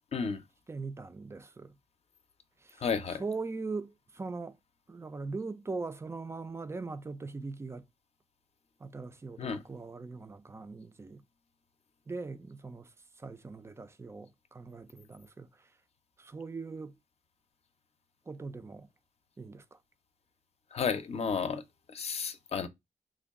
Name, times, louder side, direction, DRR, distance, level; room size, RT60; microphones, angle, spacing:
voice 1, 0.1-0.4 2.8-3.2 9.4-9.6 20.7-21.6 21.9-22.7, left 6 dB, 45° left, 0.6 m, -32 dB
voice 2, 0.7-1.7 2.6-4.5 4.9-7.8 8.8-11.2 12.1-12.9 13.2-15.5 16.2-16.9 18.3-18.9 19.4-19.8, right 3 dB, 20° right, 0.3 m, -40 dB
3.4 x 2.3 x 3.5 m
wide cardioid pair, 135°, 15 cm